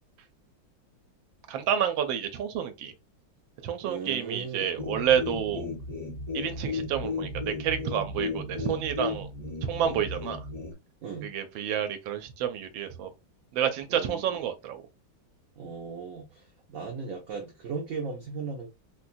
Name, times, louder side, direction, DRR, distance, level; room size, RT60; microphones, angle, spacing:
voice 1, 1.5-2.9 3.6-5.7 6.3-9.3 9.6-10.4 11.2-13.1 13.5-14.8, right 9 dB, 80° right, 1.3 m, -29 dB
voice 2, 3.8-4.7 11.0-11.3 13.9-14.4 15.6-18.7, right 5 dB, 60° right, 0.9 m, -37 dB
sound 1, 4.8-10.7, left 3 dB, 25° right, 0.7 m, -35 dB
3.6 x 2.2 x 2.5 m
omnidirectional pair, 2.1 m